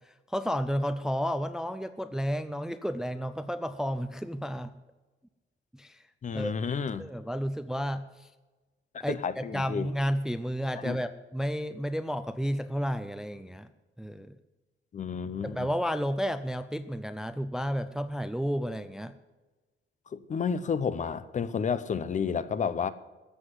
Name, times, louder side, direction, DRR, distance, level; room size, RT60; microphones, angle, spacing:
voice 1, 0.1-4.7 5.7-6.0 6.3-6.6 7.0-8.3 9.0-13.7 14.0-14.4 15.4-19.1, equal, 5° right, 0.4 m, -32 dB
voice 2, 6.2-7.0 9.1-9.9 10.8-11.0 14.9-15.7 20.1-22.9, left 6 dB, 35° left, 0.7 m, -31 dB
14.0 x 7.8 x 8.2 m
wide cardioid pair, 165°, 21 cm